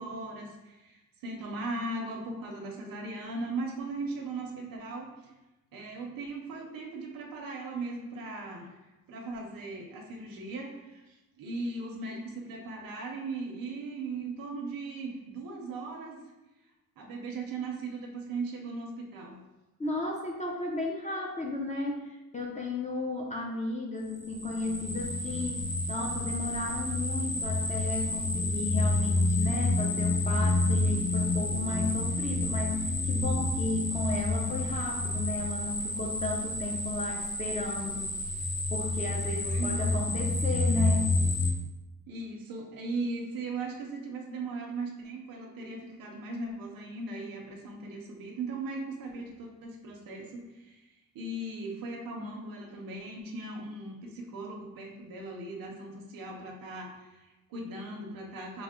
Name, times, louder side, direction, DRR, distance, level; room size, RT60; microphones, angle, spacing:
voice 1, 0.0-5.3 5.7-8.8 9.1-16.2 17.0-19.4 39.4-40.1 42.1-58.6, right 2 dB, 80° right, 0 dB, 0.7 m, -38 dB
voice 2, 19.8-25.6 25.9-38.1 38.7-41.2, left 2 dB, 20° left, -1 dB, 0.4 m, -34 dB
sound 1, 24.1-41.5, left 2 dB, 50° left, 1.1 m, -29 dB
5.5 x 2.0 x 3.6 m, 1.0 s
wide cardioid pair, 145°, 34 cm